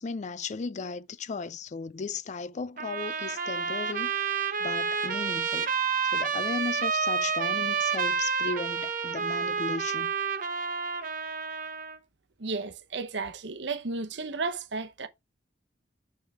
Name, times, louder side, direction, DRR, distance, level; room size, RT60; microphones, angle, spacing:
voice 1, 0.0-4.1 4.6-5.7 6.1-10.1, left 4 dB, 40° left, 0.4 m, -36 dB
Trumpet, 2.8-12.0, right 5 dB, 50° right, 1.0 m, -29 dB
voice 2, 12.4-15.1, right 4 dB, 75° right, 0.9 m, -33 dB
6.2 x 5.5 x 3.6 m
head